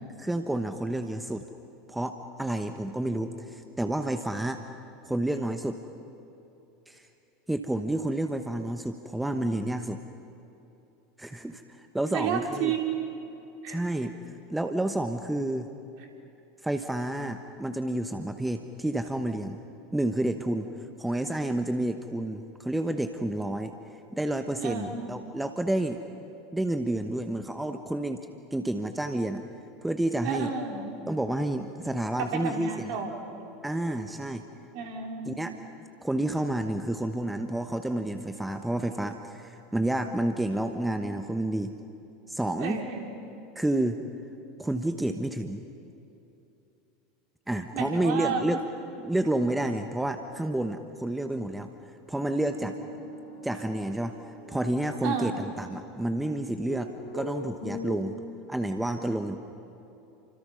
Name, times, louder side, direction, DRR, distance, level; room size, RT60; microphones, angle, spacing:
voice 1, 0.2-1.4 1.9-4.6 5.0-5.8 6.9-7.0 7.5-10.0 11.2-11.6 11.9-12.7 13.7-14.1 14.5-15.7 16.6-19.6 19.9-20.7 21.0-23.7 24.1-26.0 26.5-28.3 28.5-29.4 29.8-30.5 31.1-32.9 33.6-34.4 35.2-35.5 36.0-41.7 42.3-42.8 43.5-44.0 44.6-45.6 47.5-48.6 49.0-51.7 52.1-52.8 53.4-54.1 54.5-58.2 58.5-59.4, right 1 dB, 5° right, 7 dB, 1.2 m, -29 dB
voice 2, 12.1-13.1 13.6-13.8 24.6-25.0 30.2-30.9 32.2-33.3 34.7-35.5 42.6-43.1 47.7-48.4 55.0-55.3, right 6 dB, 55° right, 2 dB, 3.9 m, -31 dB
sound 1, 52.4-54.6 56.7-58.0, left 2 dB, 75° left, 6.6 m, -40 dB
30.0 x 26.0 x 5.6 m, 2.9 s
figure-of-eight pair, 80°, 0 cm